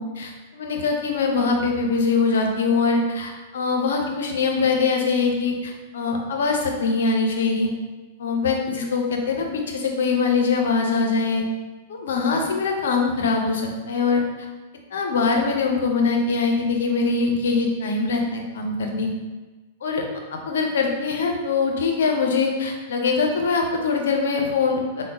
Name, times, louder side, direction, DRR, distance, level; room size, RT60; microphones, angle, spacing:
voice 1, 0.0-7.7 8.2-11.4 11.9-14.2 14.9-19.1 19.8-20.0 20.3-25.0, left 4 dB, 70° left, 2 dB, 0.6 m, -23 dB
3.6 x 2.1 x 3.5 m, 1.2 s
hypercardioid pair, 105°, 0 cm